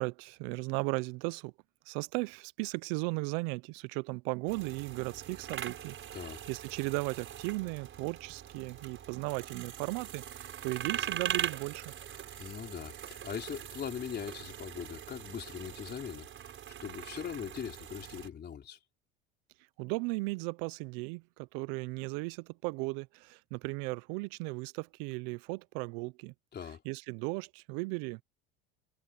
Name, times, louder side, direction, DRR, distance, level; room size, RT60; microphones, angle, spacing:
voice 1, 0.0-1.5 1.9-5.9 6.5-11.8 19.8-26.3 26.8-28.2, right 27 dB, 70° right, 0.9 m, -36 dB
sound 1, 4.5-18.3, right 10 dB, 40° right, 6.0 m, -41 dB
voice 2, 12.4-18.8 26.5-26.8, left 8 dB, 35° left, 4.3 m, -41 dB
supercardioid pair, 95°, 30 cm